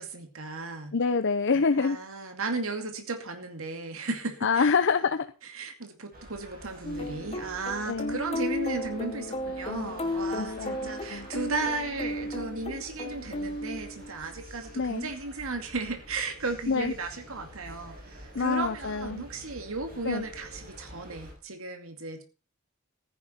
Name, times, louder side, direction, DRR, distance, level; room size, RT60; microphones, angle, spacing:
voice 1, 0.0-0.9 1.8-4.7 5.4-22.2, right 3 dB, 70° right, 6 dB, 2.3 m, -35 dB
voice 2, 0.9-2.0 4.4-5.3 7.9-8.2 10.3-11.3 14.7-15.1 16.7-16.9 18.3-19.3 20.0-20.2, left 5 dB, 60° left, 9 dB, 0.7 m, -26 dB
sound 1, 6.1-21.3, equal, 45° right, 6.3 m, -48 dB
sound 2, 6.8-14.3, left 1 dB, 30° left, 1.5 m, -35 dB
14.5 x 10.0 x 4.4 m, 0.35 s
head